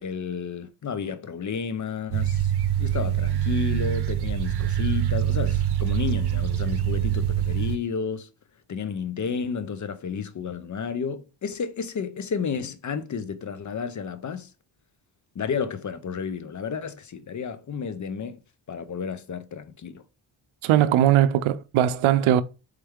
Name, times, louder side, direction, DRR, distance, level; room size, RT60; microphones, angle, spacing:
voice 1, 0.0-2.5 2.8-8.3 8.7-14.5 15.4-18.4 18.7-20.0, left 6 dB, 40° left, 0.6 m, -31 dB
sound 1, 2.1-7.8, right 10 dB, 55° right, 0.8 m, -25 dB
voice 2, 20.6-22.4, right 11 dB, 90° right, 0.5 m, -20 dB
4.4 x 3.3 x 3.6 m
cardioid pair, 75°, 47 cm